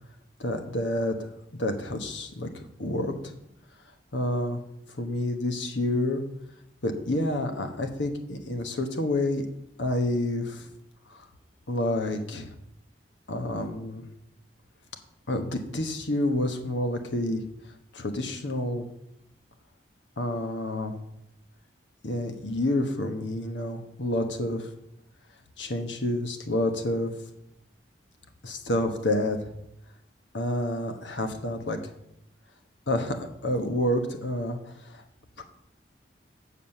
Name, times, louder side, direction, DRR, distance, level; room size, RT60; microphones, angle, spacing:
voice 1, 0.4-1.2 1.5-3.3 4.1-4.6 4.9-6.2 6.8-9.4 9.8-10.7 11.1-11.3 11.7-12.5 13.3-14.0 15.3-17.4 17.9-18.9 20.2-20.9 22.0-24.7 25.6-27.1 28.4-29.5 30.3-31.8 32.9-35.0 35.4-35.5, left 1 dB, 80° left, 6 dB, 1.3 m, -29 dB
7.4 x 6.5 x 6.5 m, 0.81 s
head